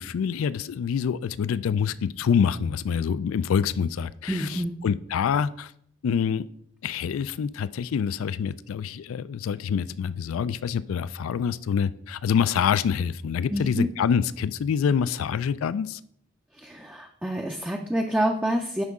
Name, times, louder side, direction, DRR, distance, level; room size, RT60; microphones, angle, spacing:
voice 1, 0.0-5.7 6.0-6.4 6.8-16.0, left 7 dB, 80° left, 17 dB, 0.3 m, -26 dB
voice 2, 4.3-4.8 13.5-13.9 16.6-18.8, equal, 5° right, 2 dB, 0.4 m, -27 dB
9.7 x 5.3 x 3.6 m, 0.68 s
head